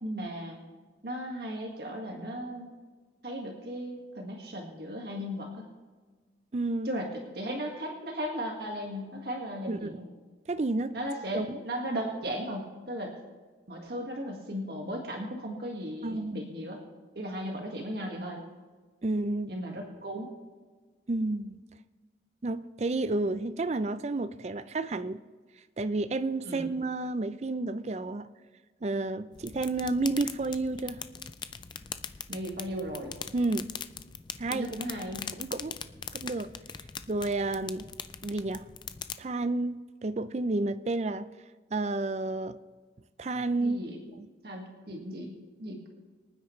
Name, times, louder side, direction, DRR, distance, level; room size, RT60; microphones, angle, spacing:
voice 1, 0.0-0.6 1.0-2.7 3.2-5.7 6.9-10.0 10.9-13.1 13.7-16.8 17.2-18.4 19.5-20.3 26.5-26.7 32.3-33.1 34.5-35.3 43.6-44.0 44.4-45.9, equal, 60° right, 1 dB, 1.8 m, -36 dB
voice 2, 6.5-6.9 9.7-10.0 10.5-11.0 11.3-11.6 16.0-16.4 19.0-19.5 21.1-21.6 22.4-25.2 25.8-28.3 28.8-31.0 33.3-33.7 34.4-34.7 35.3-35.7 36.1-36.5 37.1-37.9 38.2-38.7 39.2-41.3 41.7-42.6 43.2-43.8 44.2-44.3, right 2 dB, 35° right, 12 dB, 0.4 m, -30 dB
sound 1, 29.3-39.1, left 7 dB, 25° left, 0.4 m, -42 dB
25.0 x 9.3 x 3.2 m, 1.4 s
head